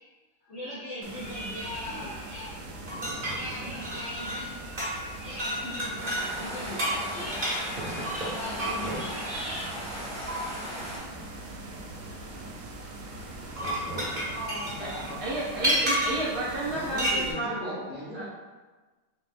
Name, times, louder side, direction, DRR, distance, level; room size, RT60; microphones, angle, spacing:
voice 1, 0.5-2.6 3.1-9.6, equal, 55° left, -8 dB, 0.8 m, -39 dB
sound 1, 1.0-17.3, right 1 dB, 85° right, 0.7 m, -42 dB
sound 2, 2.9-4.5 4.8-5.1 5.4-6.3 6.8-9.0 10.3-10.4 13.4-16.3 17.0-17.2, right 1 dB, 30° right, 1.4 m, -30 dB
sound 3, 6.0-11.0, equal, 5° left, 0.7 m, -38 dB
voice 2, 14.3-15.1 16.6-18.3, left 1 dB, 75° left, -10 dB, 0.5 m, -39 dB
voice 3, 15.2-17.8 18.1-18.3, right 2 dB, 60° right, -6 dB, 1.1 m, -32 dB
3.9 x 3.5 x 2.4 m, 1.3 s
omnidirectional pair, 2.2 m